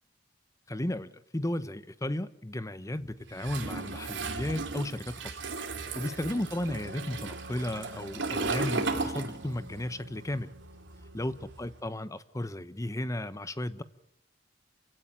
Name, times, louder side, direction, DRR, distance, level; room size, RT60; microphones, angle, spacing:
voice 1, 0.7-5.4 5.9-10.5 11.1-13.8, left 1 dB, 15° left, 1.0 m, -34 dB
Toilet flush, 3.4-9.8 10.1-11.7, right 3 dB, 80° right, 3.1 m, -35 dB
Wind instrument woodwind instrument, 6.6-12.0, right 1 dB, 50° right, 6.5 m, -51 dB
28.0 x 16.5 x 9.9 m
head